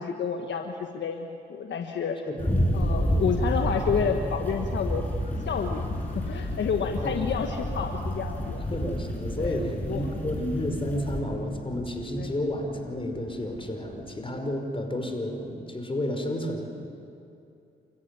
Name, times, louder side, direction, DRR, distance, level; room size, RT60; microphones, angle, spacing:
voice 1, 0.0-2.2 2.7-5.1 5.4-5.9 6.1-8.7 9.4-10.1 12.2-12.3, left 6 dB, 70° left, 4 dB, 1.4 m, -30 dB
sound 1, 2.4-11.2, equal, 10° left, 7.6 m, -30 dB
sound 2, 5.2-14.2, left 3 dB, 45° left, 3.1 m, -39 dB
voice 2, 8.7-16.6, left 1 dB, 25° left, 4 dB, 5.2 m, -31 dB
28.5 x 14.5 x 9.9 m, 2.6 s
supercardioid pair, 55°, 19 cm